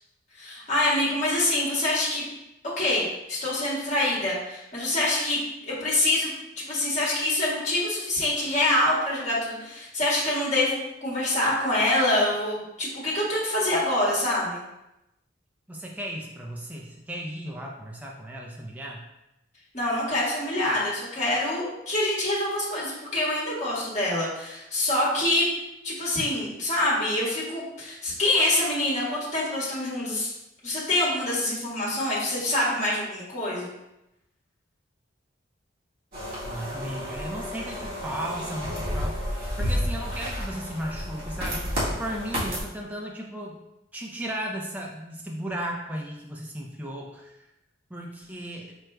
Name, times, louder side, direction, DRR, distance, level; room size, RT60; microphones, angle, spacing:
voice 1, 0.3-2.2 2.6-5.4 5.7-14.6 19.7-25.4 25.8-30.3 30.6-33.7, left 1 dB, 40° left, -6 dB, 1.5 m, -25 dB
voice 2, 15.7-19.0 36.4-43.6 43.9-47.4 47.9-48.7, right 1 dB, 10° right, -1 dB, 0.4 m, -35 dB
sound 1, 36.1-42.6, equal, 50° right, 1.6 m, -31 dB
5.0 x 4.5 x 2.2 m, 0.89 s
head